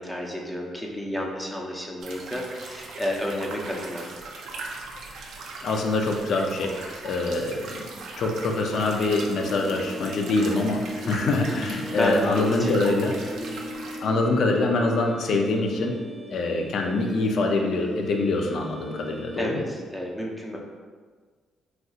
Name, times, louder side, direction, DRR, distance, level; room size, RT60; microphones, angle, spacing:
voice 1, 0.0-4.1 11.0-13.1 13.4-13.5 19.3-20.6, left 1 dB, 5° left, -1 dB, 0.6 m, -31 dB
sound 1, 2.0-14.0, right 3 dB, 75° right, 0.5 m, -40 dB
voice 2, 5.6-7.7 8.2-13.1 14.0-15.9 16.3-19.6, left 2 dB, 70° left, 2 dB, 0.4 m, -25 dB
sound 2, 8.5-19.4, left 1 dB, 35° right, 0.9 m, -37 dB
4.0 x 2.7 x 2.4 m, 1.5 s
cardioid pair, 90°, 0 cm